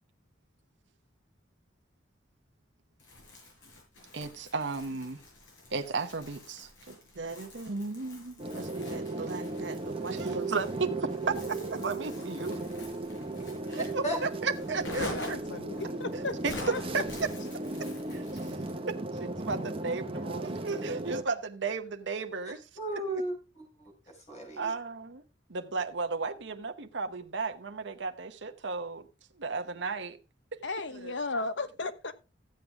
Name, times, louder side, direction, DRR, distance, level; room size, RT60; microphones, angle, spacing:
Crumpling crinkling, 3.0-18.8, left 2 dB, 85° left, 6.2 m, -46 dB
voice 1, 4.1-5.2 5.7-10.9 11.3-12.6 13.7-15.4 16.1-16.5 16.9-17.0 17.8-18.2 18.9-22.6 22.9-23.0 24.6-25.2 25.5-29.1 29.4-30.2, right 4 dB, 70° right, 1.0 m, -35 dB
sound 1, 8.4-21.2, right 2 dB, 30° right, 1.2 m, -36 dB
voice 2, 15.1-16.4 16.7-16.8 30.6-32.1, left 3 dB, 70° left, 1.1 m, -35 dB
voice 3, 22.8-24.7, right 1 dB, 40° left, 5.5 m, -35 dB
14.0 x 8.1 x 3.5 m
head